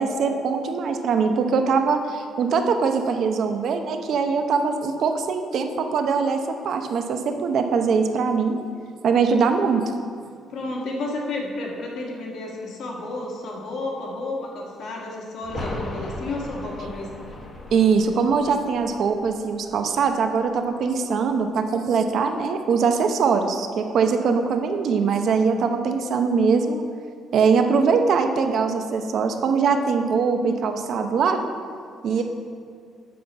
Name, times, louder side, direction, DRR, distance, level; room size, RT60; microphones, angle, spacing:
voice 1, 0.0-6.4 6.6-8.6 9.0-9.9 17.7-26.8 27.3-31.4 32.0-32.2, right 5 dB, 50° right, 6 dB, 0.7 m, -22 dB
voice 2, 10.5-17.2, left 2 dB, 60° left, -1 dB, 1.6 m, -31 dB
sound 1, 15.4-21.0 21.3-21.4, left 1 dB, 25° left, 1.1 m, -38 dB
7.5 x 5.6 x 6.7 m, 2.2 s
cardioid pair, 160°, 0 cm